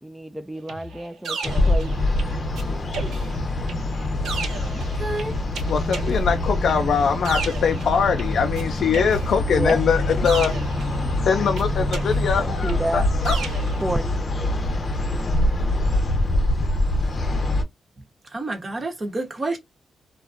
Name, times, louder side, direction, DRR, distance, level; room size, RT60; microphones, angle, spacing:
voice 1, 0.0-2.0 9.5-9.8 12.4-13.1 13.8-14.2 14.7-14.9, right 1 dB, 5° right, 0.3 m, -29 dB
sound 1, 0.7-2.6 2.9-8.6 8.9-11.2 11.6-13.8, right 4 dB, 80° right, 0.7 m, -35 dB
sound 2, 1.4-17.6, left 1 dB, 40° left, 0.7 m, -24 dB
voice 2, 4.7-5.3 18.0-18.1 18.3-19.6, right 2 dB, 35° right, 0.9 m, -29 dB
voice 3, 5.7-10.6 11.0-13.4, left 6 dB, 70° left, 0.3 m, -22 dB
2.5 x 2.1 x 2.4 m
cardioid pair, 80°, 0 cm